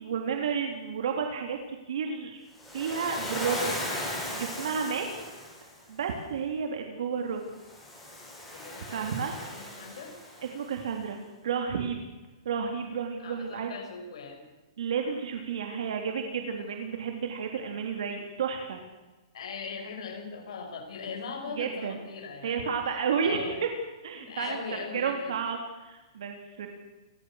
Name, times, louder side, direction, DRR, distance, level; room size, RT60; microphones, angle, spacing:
voice 1, 0.0-2.4 2.7-5.0 5.9-7.4 8.9-9.4 10.5-11.2 11.4-12.1 12.4-13.7 14.8-18.8 21.6-22.0 22.4-23.7 24.0-24.6 24.9-26.7, right 6 dB, 65° right, 4 dB, 3.4 m, -31 dB
Waves surf, 2.6-5.8 7.6-10.6, left 1 dB, 5° left, 7.6 m, -37 dB
voice 2, 8.5-9.2 9.5-10.2 13.2-14.5 19.3-22.7 23.2-23.6 24.1-25.4, left 5 dB, 70° left, 2 dB, 6.6 m, -40 dB
29.5 x 15.5 x 6.6 m, 1.1 s
hypercardioid pair, 170°, 3 cm